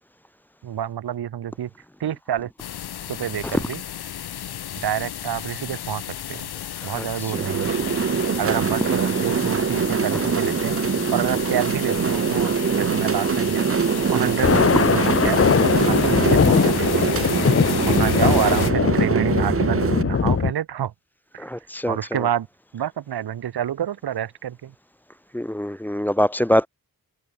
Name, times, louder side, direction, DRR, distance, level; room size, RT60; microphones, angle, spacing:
voice 1, 0.6-1.7 2.0-2.5 3.1-3.8 4.8-6.0 6.3-6.5 6.8-7.8 8.4-10.8 11.1-13.8 14.1-15.4 15.9-17.1 17.8-20.9 21.3-21.5 21.9-22.5 22.7-24.7, right 10 dB, 85° right, 0.9 m, -28 dB
sound 1, 2.6-18.7, left 10 dB, 85° left, 0.8 m, -33 dB
sound 2, 7.3-20.0, right 6 dB, 35° right, 0.7 m, -23 dB
Thunder, 14.3-20.5, left 6 dB, 35° left, 0.8 m, -20 dB
voice 2, 21.4-22.0 25.3-26.7, equal, 5° left, 0.7 m, -23 dB
cardioid pair, 75°, 38 cm